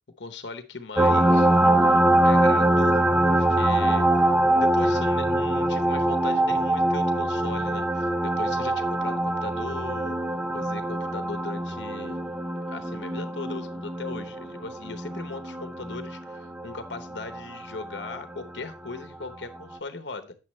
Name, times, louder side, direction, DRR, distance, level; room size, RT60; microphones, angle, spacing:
voice 1, 0.2-1.5 2.2-3.0 3.3-10.2 10.5-12.2 12.7-20.4, left 3 dB, 70° left, 8 dB, 0.9 m, -38 dB
sound 1, 1.0-18.2 19.7-19.8, right 1 dB, 5° right, 0.4 m, -23 dB
9.2 x 7.4 x 3.1 m, 0.30 s
head